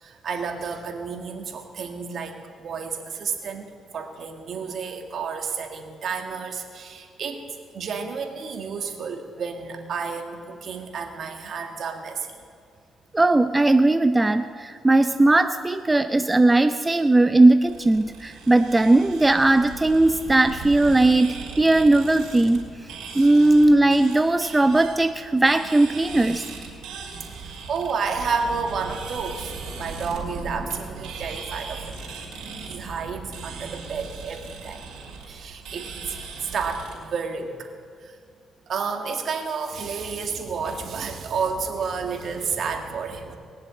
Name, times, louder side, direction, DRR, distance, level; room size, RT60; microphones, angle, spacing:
voice 1, 0.0-3.7 3.9-7.4 7.7-12.2 27.3-31.9 32.7-34.8 35.3-35.9 36.5-37.7 38.0-38.1 38.7-43.4, right 5 dB, 60° right, 5 dB, 1.9 m, -31 dB
voice 2, 13.1-22.7 23.1-26.4, right 2 dB, 15° right, 10 dB, 0.5 m, -18 dB
sound 1, 17.6-36.9, right 4 dB, 85° right, 4.0 m, -38 dB
20.0 x 7.4 x 8.6 m, 2.2 s
cardioid pair, 90°, 0 cm